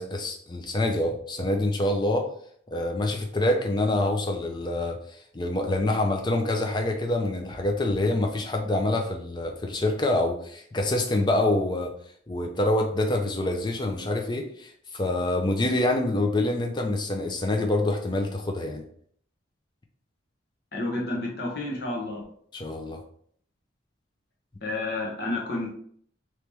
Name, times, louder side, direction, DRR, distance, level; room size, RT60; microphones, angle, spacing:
voice 1, 0.0-2.3 2.7-5.0 5.3-11.9 12.3-18.8 22.5-23.0, left 1 dB, 25° left, 3 dB, 0.5 m, -26 dB
voice 2, 20.7-22.2 24.6-25.7, left 2 dB, 55° left, -2 dB, 0.9 m, -30 dB
3.4 x 3.0 x 2.9 m, 0.62 s
head